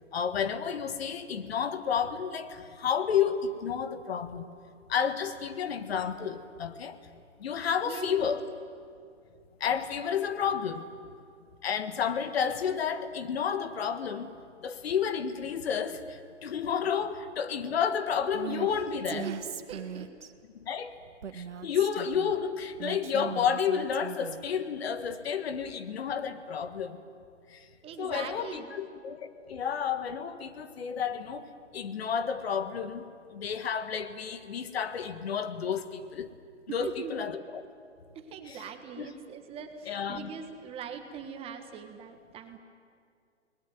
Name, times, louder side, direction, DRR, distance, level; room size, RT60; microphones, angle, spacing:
voice 1, 0.1-4.5 4.9-7.0 7.4-8.4 9.6-10.9 11.6-14.3 14.6-19.3 20.6-21.0 21.3-27.0 27.5-27.7 28.0-31.5 31.7-33.1 33.3-36.3 36.7-37.6 38.5-38.6 39.0-39.1 39.9-40.3, left 7 dB, 55° left, 11 dB, 1.8 m, -31 dB
voice 2, 7.8-8.4 19.2-19.3 19.7-20.1 27.8-28.7 36.7-37.1 38.1-42.6, right 7 dB, 15° right, 6 dB, 1.5 m, -41 dB
Female speech woman speaking, 18.3-18.7 19.0-20.3 21.2-22.3 22.8-24.4, right 7 dB, 70° right, 1.7 m, -39 dB
28.0 x 20.5 x 9.4 m, 2.3 s
hypercardioid pair, 140°, 37 cm